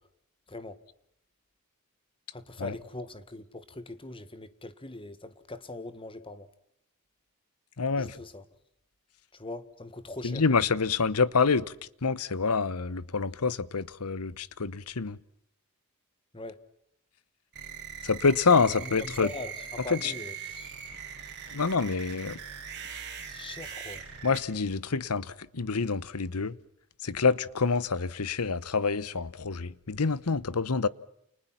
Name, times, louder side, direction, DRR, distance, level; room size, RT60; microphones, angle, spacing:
voice 1, 2.3-6.5 8.0-8.4 9.3-10.4 16.3-16.6 18.7-20.7 23.2-24.0, left 2 dB, 25° left, 1.7 m, -42 dB
voice 2, 7.8-8.2 10.2-11.6 12.0-15.2 18.0-19.3 19.9-20.1 21.5-22.4 22.9-23.0 24.2-26.6 27.0-30.9, left 4 dB, 80° left, 1.0 m, -27 dB
sound 1, 17.5-24.4, right 7 dB, 50° right, 5.9 m, -41 dB
29.5 x 29.0 x 5.9 m
head